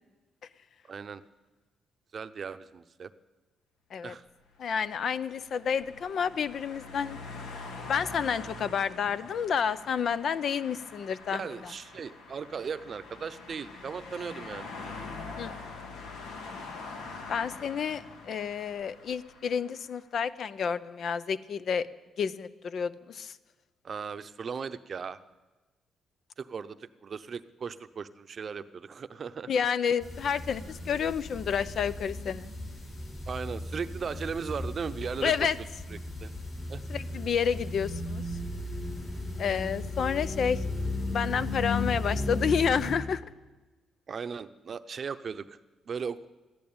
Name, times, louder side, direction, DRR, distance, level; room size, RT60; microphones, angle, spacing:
voice 1, 0.9-1.2 2.1-3.1 4.0-4.2 11.4-14.9 23.8-25.2 26.4-29.5 33.3-35.6 35.9-36.3 36.7-36.8 44.1-45.6 45.9-46.3, right 6 dB, 45° right, 12 dB, 0.7 m, -37 dB
sound 1, 4.5-19.9, left 3 dB, 85° left, 2.2 m, -44 dB
voice 2, 4.6-7.2 7.9-11.7 15.4-15.7 17.3-21.9 22.2-23.4 29.5-32.5 35.2-35.6 36.9-38.2 39.4-40.6 41.1-43.2, left 7 dB, 60° left, 15 dB, 0.6 m, -30 dB
sound 2, 30.0-42.9, left 2 dB, 35° left, 6.9 m, -35 dB
13.5 x 11.0 x 8.7 m, 1.2 s
cardioid pair, 90°, 0 cm